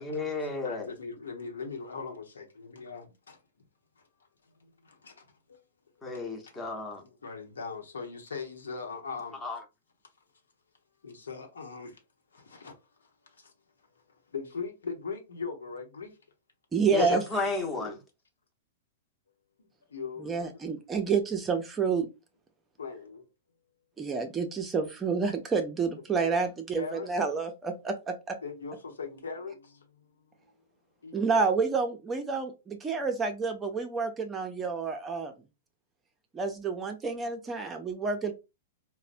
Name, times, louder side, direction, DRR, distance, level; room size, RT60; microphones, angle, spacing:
voice 1, 0.0-0.9 6.0-7.0 9.4-9.6 16.9-17.9, left 3 dB, 15° left, 0.9 m, -32 dB
voice 2, 0.6-3.4 4.0-4.1 4.5-5.6 6.5-6.6 7.0-9.4 11.0-12.0 12.3-13.5 13.9-16.2 17.0-17.4 17.8-18.0 19.6-20.5 22.8-23.3 26.1-26.3 26.7-27.1 28.4-30.0 31.0-31.2, left 5 dB, 85° left, 0.9 m, -40 dB
voice 3, 16.7-17.2 20.2-22.1 24.0-28.4 31.1-35.3 36.3-38.3, right 5 dB, 20° right, 0.6 m, -29 dB
3.9 x 2.1 x 2.5 m
hypercardioid pair, 115°, 0 cm